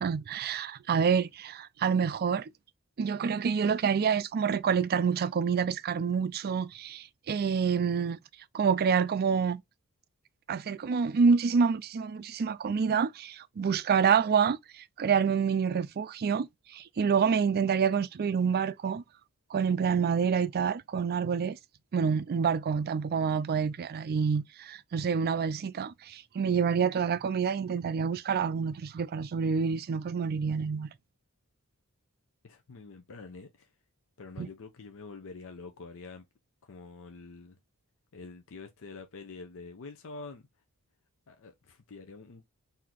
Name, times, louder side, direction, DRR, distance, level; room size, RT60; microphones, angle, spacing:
voice 1, 0.0-2.5 3.0-8.2 8.5-9.6 10.5-19.0 19.5-21.6 21.9-30.9 34.4-34.5, right 6 dB, 45° right, 0.4 m, -27 dB
voice 2, 32.4-33.7 34.2-36.3 36.6-37.6 38.1-40.5 41.3-42.5, left 4 dB, 65° left, 0.6 m, -46 dB
4.0 x 2.7 x 3.0 m
head